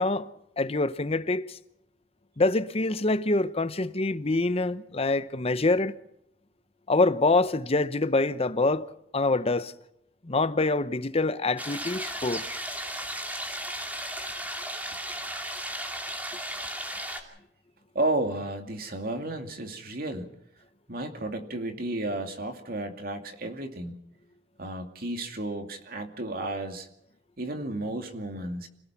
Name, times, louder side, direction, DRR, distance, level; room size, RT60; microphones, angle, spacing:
voice 1, 0.0-1.6 2.4-5.9 6.9-8.9 9.1-9.7 10.2-12.4, left 2 dB, 35° left, 0.9 m, -25 dB
sound 1, 11.6-17.2, right 1 dB, 10° right, 2.7 m, -35 dB
voice 2, 17.9-20.3 20.9-24.0 24.6-26.9 27.4-28.7, right 2 dB, 55° right, 2.5 m, -32 dB
26.5 x 17.5 x 5.9 m
head